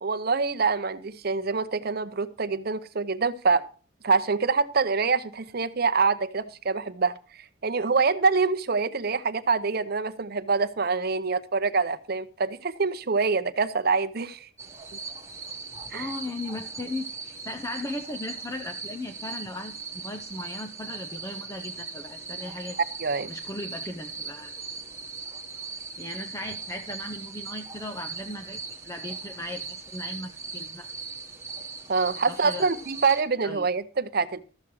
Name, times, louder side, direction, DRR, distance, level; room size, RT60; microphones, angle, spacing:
voice 1, 0.0-3.6 4.0-7.2 7.6-14.5 15.9-16.1 23.0-23.3 31.9-34.4, right 4 dB, 50° right, 12 dB, 0.7 m, -25 dB
sound 1, 14.6-33.2, right 4 dB, 15° right, 1.2 m, -39 dB
voice 2, 15.9-22.8 23.3-24.5 26.0-30.9 32.1-32.7 33.4-33.7, left 1 dB, 15° left, 6 dB, 0.6 m, -37 dB
13.0 x 7.3 x 4.7 m, 0.38 s
head